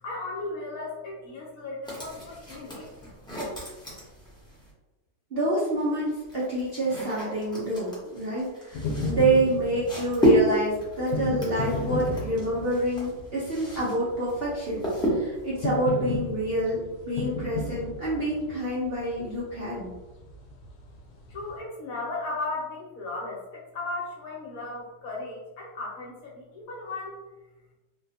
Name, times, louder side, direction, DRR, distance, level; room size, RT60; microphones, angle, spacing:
voice 1, 0.0-2.9 21.3-27.2, left 2 dB, 60° left, -3 dB, 1.1 m, -36 dB
sound 1, 1.8-4.7 5.7-14.0 14.2-15.5, right 1 dB, 5° left, 0.3 m, -30 dB
voice 2, 5.3-19.9, right 1 dB, 60° right, -7 dB, 0.6 m, -27 dB
sound 2, 8.7-21.6, left 3 dB, 85° left, 1.2 m, -35 dB
3.5 x 2.2 x 2.7 m, 1.1 s
omnidirectional pair, 1.9 m